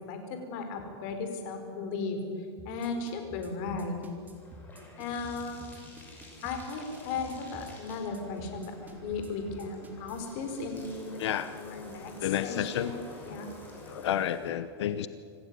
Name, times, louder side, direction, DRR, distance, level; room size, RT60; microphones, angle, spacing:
voice 1, 0.0-2.2 2.6-4.0 5.0-5.7 6.4-11.2 11.5-13.5, left 4 dB, 45° left, 6 dB, 4.7 m, -36 dB
sound 1, 2.6-10.3, equal, 10° right, 2.6 m, -49 dB
Bathtub (filling or washing), 4.2-14.5, left 2 dB, 10° left, 6.1 m, -50 dB
voice 2, 11.2-11.5 12.2-12.9 13.9-15.1, left 11 dB, 75° left, 13 dB, 1.1 m, -30 dB
26.5 x 16.0 x 9.5 m, 2.3 s
supercardioid pair, 155°, 14 cm